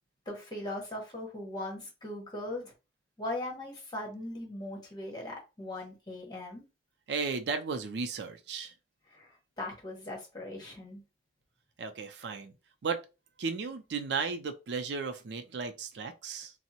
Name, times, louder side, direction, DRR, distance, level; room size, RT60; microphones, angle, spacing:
voice 1, 0.3-2.7 3.2-6.6 9.1-9.3 9.6-11.0, left 1 dB, 25° left, 1.1 m, -39 dB
voice 2, 7.1-8.7 11.8-12.5 12.8-13.0 13.4-16.5, right 5 dB, 75° right, 0.4 m, -35 dB
3.5 x 2.0 x 2.8 m
head